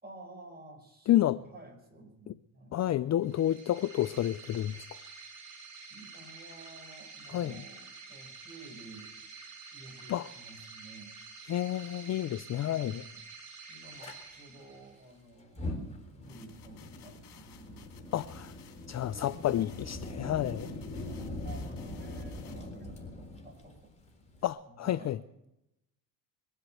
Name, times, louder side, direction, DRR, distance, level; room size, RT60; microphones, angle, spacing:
voice 1, 0.0-2.8 5.9-9.2 9.7-11.2 12.6-13.2 13.7-18.2 21.1-23.9 24.7-25.5, right 2 dB, 20° right, 5.8 m, -52 dB
voice 2, 1.1-1.4 2.3-2.4 2.7-4.9 7.3-7.5 10.1-10.3 11.5-13.0 18.1-18.5 18.9-20.7 24.4-25.2, left 12 dB, 40° left, 0.5 m, -30 dB
sound 1, 3.2-15.1, right 4 dB, 45° right, 6.2 m, -49 dB
Fire, 14.0-14.1 15.4-24.5, left 1 dB, 15° left, 4.0 m, -42 dB
sound 2, 16.2-22.7, left 9 dB, 65° left, 2.7 m, -57 dB
22.0 x 8.2 x 7.8 m
cardioid pair, 100°, 44 cm